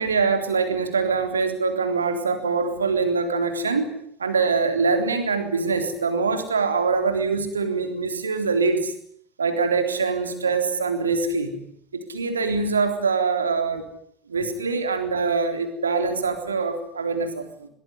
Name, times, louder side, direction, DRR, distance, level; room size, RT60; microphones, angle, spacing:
voice 1, 0.0-8.9 9.4-11.6 11.9-13.9 14.3-17.7, right 4 dB, 80° right, 7 dB, 3.6 m, -24 dB
22.5 x 22.0 x 9.7 m, 0.69 s
figure-of-eight pair, 70°, 0 cm